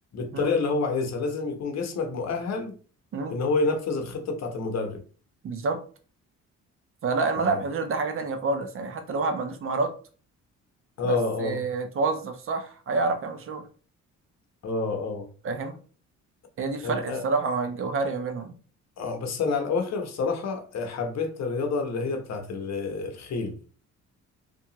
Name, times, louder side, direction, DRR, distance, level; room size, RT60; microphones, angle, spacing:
voice 1, 0.1-2.7 3.3-5.0 7.4-7.6 11.0-11.6 14.6-15.3 16.8-17.2 19.0-23.6, left 4 dB, 60° left, 0.7 m, -28 dB
voice 2, 5.4-5.8 7.0-9.9 11.0-13.7 15.4-15.8 16.6-18.5, right 3 dB, 45° right, 0.5 m, -28 dB
2.7 x 2.3 x 2.8 m
cardioid pair, 90°, 30 cm